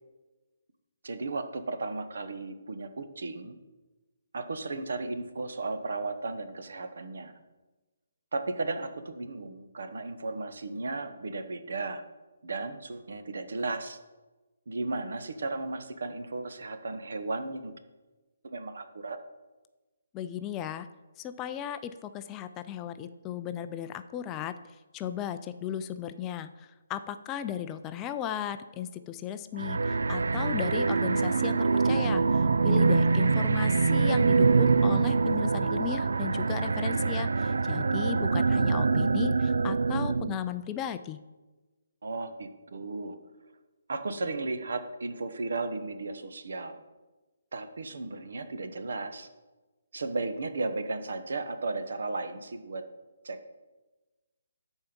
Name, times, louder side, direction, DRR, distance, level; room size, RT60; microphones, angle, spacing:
voice 1, 1.0-3.6 4.3-7.3 8.3-12.0 12.4-14.0 14.7-17.7 18.4-19.2 32.7-33.3 42.0-43.2 43.9-46.8 47.5-49.3 49.9-52.8 53.2-53.6, right 3 dB, 70° right, 9 dB, 1.0 m, -35 dB
voice 2, 20.1-20.9 21.2-24.5 24.9-41.2, left 9 dB, 15° left, 10 dB, 0.3 m, -36 dB
sound 1, 29.6-40.4, right 4 dB, 90° right, 0.3 m, -25 dB
13.0 x 4.5 x 5.2 m, 1.2 s
hypercardioid pair, 165°, 0 cm